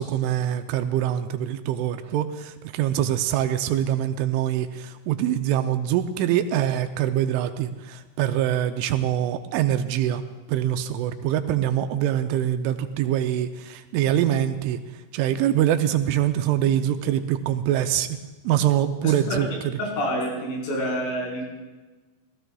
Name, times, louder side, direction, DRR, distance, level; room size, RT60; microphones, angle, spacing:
voice 1, 0.0-10.2 10.5-14.8 15.1-18.1 18.4-19.5, right 11 dB, 80° right, 8 dB, 2.9 m, -24 dB
voice 2, 19.0-19.4 19.8-21.4, equal, 85° left, -3 dB, 7.1 m, -28 dB
27.0 x 16.5 x 2.3 m, 1.2 s
omnidirectional pair, 5.7 m